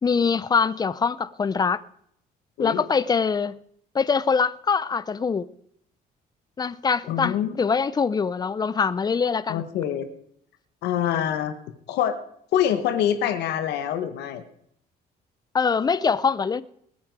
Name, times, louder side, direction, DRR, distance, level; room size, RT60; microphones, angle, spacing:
voice 1, 0.0-1.8 2.6-3.6 3.9-5.5 6.6-9.6 15.5-16.6, left 5 dB, 25° left, 0.6 m, -23 dB
voice 2, 7.1-7.5 9.5-10.1 10.8-11.5 11.9-12.2 12.5-14.4, left 10 dB, 80° left, 1.2 m, -25 dB
20.0 x 8.5 x 4.7 m
cardioid pair, 110°, 17 cm